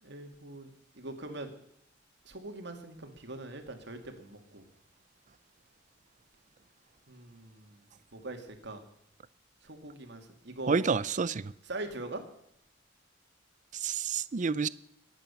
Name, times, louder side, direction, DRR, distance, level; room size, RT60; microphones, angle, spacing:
voice 1, 0.0-0.7 1.0-1.5 2.3-4.6 7.1-7.8 8.1-8.8 9.6-10.8 11.7-12.2, right 2 dB, 65° right, 2.3 m, -42 dB
voice 2, 10.7-11.5 13.7-14.7, right 5 dB, 40° right, 0.5 m, -29 dB
21.5 x 8.9 x 7.0 m
head